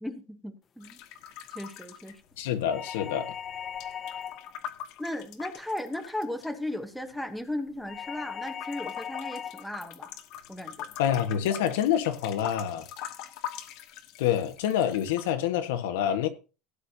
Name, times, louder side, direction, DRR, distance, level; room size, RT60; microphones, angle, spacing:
voice 1, 0.0-1.0 1.5-2.2 5.0-10.1 10.5-10.9, left 1 dB, ahead, 1.1 m, -36 dB
sound 1, 0.8-2.9 3.1-6.5 7.1-8.1 8.4-15.3, left 10 dB, 50° left, 1.0 m, -43 dB
voice 2, 2.4-3.3 11.0-12.9 14.2-16.3, left 10 dB, 90° left, 1.4 m, -27 dB
sound 2, 2.7-4.6 7.9-9.7, left 9 dB, 25° left, 0.5 m, -38 dB
16.5 x 8.4 x 2.8 m
cardioid pair, 160°, 0 cm